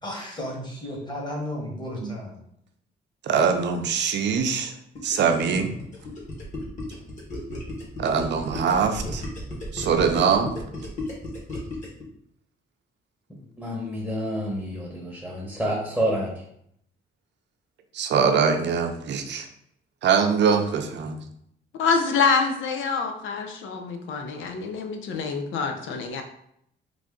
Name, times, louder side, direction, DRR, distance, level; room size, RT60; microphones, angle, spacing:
voice 1, 0.0-2.4, left 1 dB, 20° left, -1 dB, 1.3 m, -33 dB
voice 2, 3.2-4.7 5.0-5.7 8.0-9.2 9.7-10.5 14.9-15.1 17.9-19.5 20.0-21.2, right 6 dB, 60° right, 6 dB, 0.6 m, -23 dB
Gurgling, 4.9-12.0, left 1 dB, 40° left, 1.4 m, -34 dB
voice 3, 13.6-16.3, equal, ahead, -3 dB, 1.0 m, -28 dB
voice 4, 21.8-26.2, left 5 dB, 75° left, 5 dB, 0.6 m, -26 dB
3.2 x 2.5 x 3.7 m, 0.72 s
cardioid pair, 90°, 20 cm